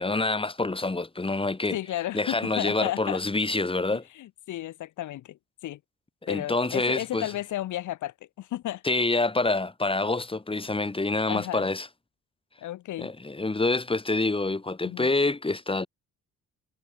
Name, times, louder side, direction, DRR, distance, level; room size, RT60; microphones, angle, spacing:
voice 1, 0.0-1.8 2.1-4.0 6.2-7.3 8.8-11.9 13.0-15.9, left 2 dB, 15° left, 4.9 m, -27 dB
voice 2, 1.7-3.2 4.2-5.8 6.3-8.8 11.3-11.7 12.6-13.1 14.8-15.1, left 14 dB, 75° left, 1.5 m, -33 dB
cardioid pair, 90°, 30 cm